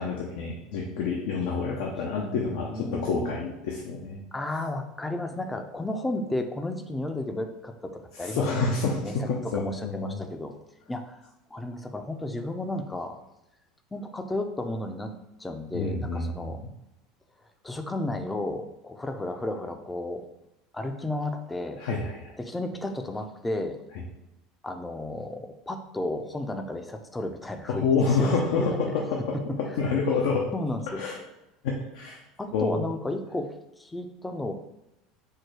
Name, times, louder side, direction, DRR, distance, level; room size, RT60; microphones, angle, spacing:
voice 1, 0.0-4.2 8.1-10.2 15.7-16.7 21.8-22.3 27.7-29.4 29.8-30.4 30.9-31.2 31.6-32.2 32.5-32.8, left 4 dB, 75° left, -1 dB, 0.7 m, -28 dB
voice 2, 2.2-3.3 4.3-9.1 9.5-10.5 10.9-11.2 11.5-13.2 13.9-15.1 15.4-16.6 17.6-20.2 20.7-21.8 22.4-23.8 24.6-27.9 28.2-28.9 29.3-29.6 30.5-31.0 32.4-34.5, left 1 dB, 10° left, 6 dB, 0.5 m, -33 dB
4.6 x 2.2 x 4.7 m, 0.90 s
supercardioid pair, 100°, 0 cm